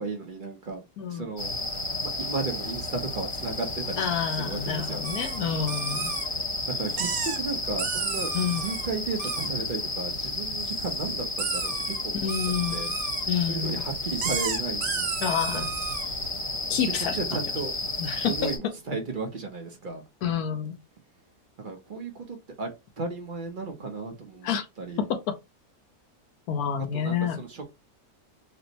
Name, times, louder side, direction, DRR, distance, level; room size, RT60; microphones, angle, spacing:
voice 1, 0.0-0.8 1.1-1.5 2.2-4.1 4.3-5.0 6.7-12.9 13.5-15.1 15.5-15.7 17.1-17.7 18.3-20.0 21.6-25.1 26.9-27.7, right 4 dB, 50° right, 0.6 m, -34 dB
voice 2, 1.0-1.3 4.0-6.1 8.3-8.7 12.2-12.8 13.3-13.8 15.2-15.7 16.7-17.2 18.0-18.3 20.2-20.7 24.4-24.7 26.5-27.4, left 8 dB, 80° left, 1.2 m, -28 dB
sound 1, 1.4-18.6, left 2 dB, 30° left, 0.7 m, -32 dB
sound 2, 5.0-5.4 5.7-6.3 6.9-7.4 7.8-8.9 9.2-9.5 10.6-10.9 11.4-12.0 12.3-13.2 14.2-16.1, right 8 dB, 70° right, 1.0 m, -33 dB
4.3 x 2.0 x 2.7 m
omnidirectional pair, 1.6 m